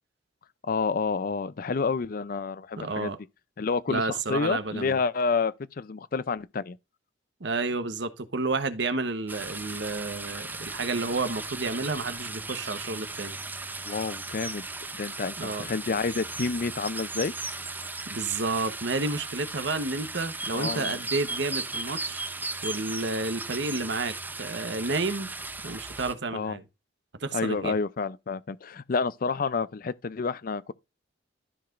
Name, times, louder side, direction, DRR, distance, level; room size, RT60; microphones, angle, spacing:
voice 1, 0.6-3.2 3.6-6.8 13.8-14.6 15.0-17.3 20.5-21.0 26.3-26.6 27.3-30.7, left 4 dB, 50° left, 0.5 m, -29 dB
voice 2, 2.8-3.2 3.9-5.0 7.4-13.4 15.4-15.7 18.1-22.3 22.6-25.3 25.6-26.6 27.2-27.8, right 3 dB, 70° right, 1.1 m, -31 dB
sound 1, 9.3-26.1, right 3 dB, 10° right, 0.6 m, -36 dB
13.5 x 4.9 x 2.5 m
head